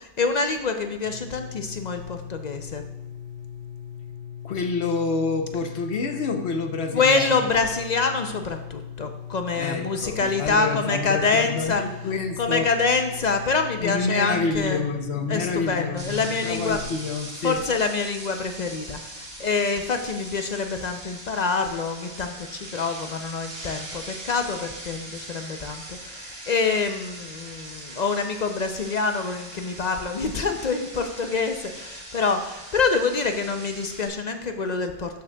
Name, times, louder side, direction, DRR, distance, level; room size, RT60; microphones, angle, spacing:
voice 1, 0.0-2.8 6.9-11.8 12.4-14.8 15.3-16.8 17.4-19.0 19.4-35.2, left 4 dB, 50° left, 6 dB, 0.5 m, -26 dB
sound 1, 1.0-17.0, left 8 dB, 40° right, 1.3 m, -39 dB
voice 2, 4.4-7.5 9.5-13.0 13.8-17.6, left 4 dB, 70° left, 5 dB, 1.0 m, -28 dB
sound 2, 16.0-34.1, right 1 dB, 60° right, 2.1 m, -41 dB
12.5 x 6.2 x 2.2 m, 1.0 s
omnidirectional pair, 1.2 m